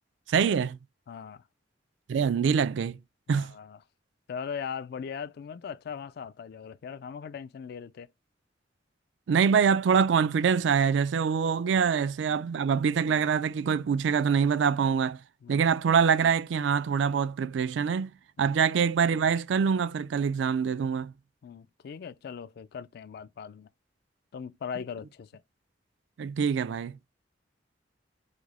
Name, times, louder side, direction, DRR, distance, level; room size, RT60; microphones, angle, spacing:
voice 1, 0.3-0.8 2.1-3.0 3.3-3.5 9.3-15.2 15.5-18.1 18.4-21.1 26.2-26.9, right 6 dB, 80° right, 0.4 m, -25 dB
voice 2, 1.1-1.4 3.3-3.8 4.3-8.1 12.3-12.5 15.4-15.6 18.4-18.5 21.4-23.7 24.3-25.3, left 6 dB, 60° left, 0.3 m, -39 dB
4.9 x 2.0 x 4.0 m
head